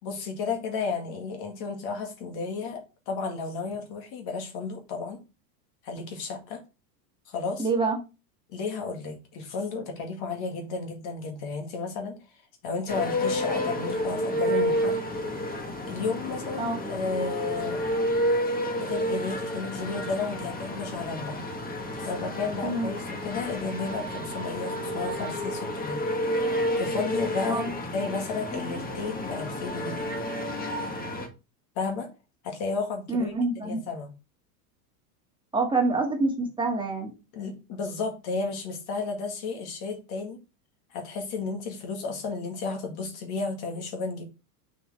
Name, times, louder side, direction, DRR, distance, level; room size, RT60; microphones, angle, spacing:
voice 1, 0.0-5.2 5.8-6.6 7.3-7.7 8.5-12.2 12.6-15.0 15.9-17.8 18.8-21.5 22.0-26.0 26.8-27.6 27.9-30.1 31.8-32.1 32.4-33.3 33.6-34.1 37.3-40.4 40.9-44.2, left 4 dB, 50° left, 2.0 m, -33 dB
voice 2, 7.6-8.0 16.6-16.9 22.6-22.9 27.5-27.7 33.1-33.8 35.5-37.1, right 3 dB, 10° right, 1.9 m, -26 dB
sound 1, 12.9-31.3, equal, 20° left, 1.4 m, -30 dB
6.0 x 4.9 x 3.3 m
hypercardioid pair, 110°, 48 cm